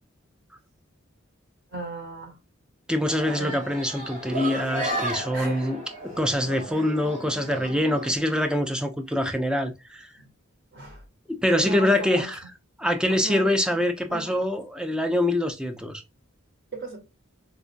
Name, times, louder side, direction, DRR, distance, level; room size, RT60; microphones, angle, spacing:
voice 1, 1.7-2.4 3.3-3.6 5.3-5.7 6.7-6.8 10.2-10.3 10.7-11.0 11.6-12.3 13.1-13.8 14.1-14.4 16.7-17.0, right 2 dB, 55° right, 1.1 m, -36 dB
voice 2, 2.9-10.1 11.3-12.4 12.8-16.0, left 1 dB, 5° right, 0.4 m, -25 dB
sound 1, 3.1-8.1, right 1 dB, 35° right, 1.1 m, -34 dB
4.3 x 2.4 x 2.4 m
head